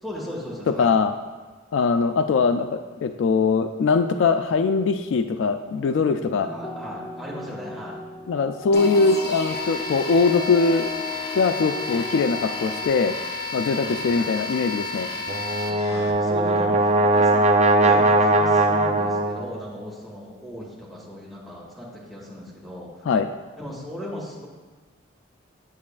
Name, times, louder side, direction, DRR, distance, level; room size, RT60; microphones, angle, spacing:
voice 1, 0.0-1.0 6.4-8.0 13.8-14.3 15.1-15.4 15.8-23.0 23.6-24.5, left 1 dB, ahead, -7 dB, 1.8 m, -37 dB
voice 2, 0.8-1.1 1.7-6.5 8.3-10.9 11.4-13.1 13.5-15.1 23.1-23.3, left 4 dB, 65° left, 8 dB, 0.3 m, -21 dB
sound 1, 6.0-12.8, left 3 dB, 20° left, 0.6 m, -36 dB
sound 2, 8.7-16.1, left 3 dB, 50° left, 0.9 m, -32 dB
Brass instrument, 15.3-19.5, right 2 dB, 35° right, 0.4 m, -19 dB
8.2 x 7.2 x 2.4 m, 1.4 s
head